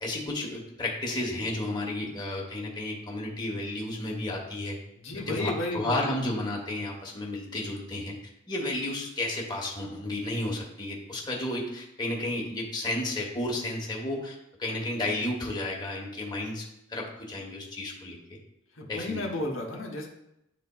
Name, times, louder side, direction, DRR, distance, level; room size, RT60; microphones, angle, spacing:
voice 1, 0.0-4.8 5.3-8.2 8.5-16.6 16.9-18.4 18.9-19.3, left 1 dB, 20° left, -2 dB, 1.1 m, -32 dB
voice 2, 5.0-6.1 18.7-20.1, left 2 dB, 75° left, 0 dB, 0.9 m, -33 dB
10.0 x 4.1 x 2.3 m, 0.83 s
head